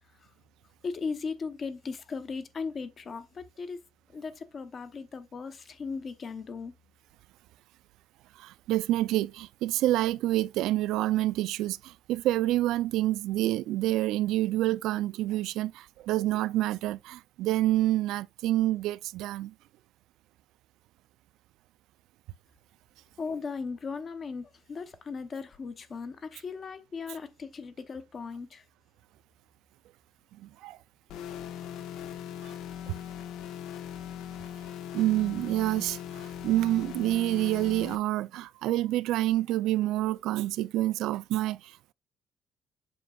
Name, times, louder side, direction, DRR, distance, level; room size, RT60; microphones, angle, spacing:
voice 1, 0.8-3.8 4.1-6.7 23.2-28.7, left 5 dB, 30° left, 0.8 m, -37 dB
voice 2, 8.4-19.5 30.4-30.8 32.4-32.5 32.9-33.0 34.9-41.9, right 15 dB, 85° right, 0.3 m, -28 dB
sound 1, 31.1-38.0, left 10 dB, 85° left, 1.1 m, -40 dB
7.7 x 5.8 x 2.3 m
cardioid pair, 170°, 0 cm